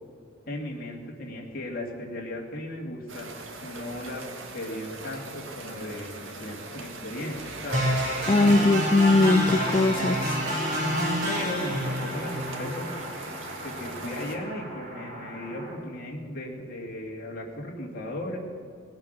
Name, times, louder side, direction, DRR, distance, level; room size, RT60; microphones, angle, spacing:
voice 1, 0.5-3.3 3.6-4.2 4.5-7.9 11.3-12.9 13.6-18.4, left 1 dB, 45° left, -1 dB, 2.6 m, -36 dB
sound 1, 3.1-14.4, right 2 dB, 75° right, 1.8 m, -40 dB
sound 2, 7.7-15.7, equal, 50° right, 4.4 m, -29 dB
voice 2, 8.3-10.4, left 2 dB, 25° left, 11 dB, 0.3 m, -20 dB
19.5 x 8.8 x 6.7 m, 2.3 s
head